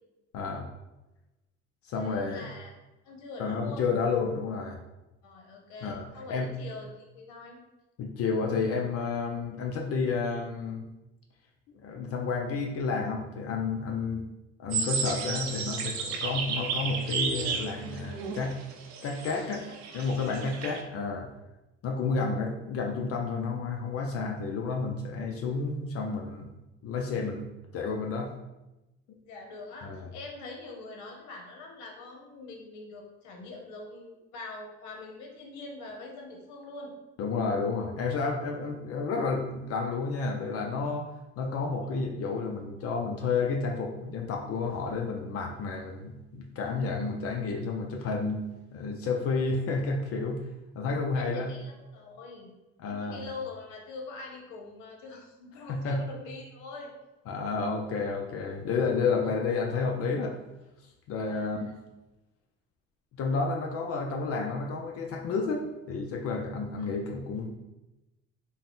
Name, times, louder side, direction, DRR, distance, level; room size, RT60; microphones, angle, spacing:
voice 1, 0.3-0.7 1.8-2.5 3.4-4.8 5.8-6.6 8.0-10.9 11.7-14.2 14.6-18.6 19.0-19.6 19.9-21.3 21.8-26.5 26.8-28.3 29.8-30.1 37.2-41.1 41.4-48.4 48.7-50.4 50.7-51.5 52.8-53.2 55.7-56.0 57.3-60.4 61.1-61.7 63.1-67.6, left 4 dB, 50° left, 1 dB, 0.5 m, -31 dB
voice 2, 1.9-2.7 3.0-3.9 5.2-7.6 19.9-20.0 20.5-20.6 29.2-36.9 41.8-42.0 49.3-49.5 51.1-52.5 52.9-56.9 61.2-61.5, left 3 dB, 80° left, 0 dB, 1.0 m, -44 dB
sound 1, 14.7-20.8, right 6 dB, 70° right, 0.6 m, -33 dB
4.0 x 2.1 x 3.8 m, 0.99 s
cardioid pair, 115°, 29 cm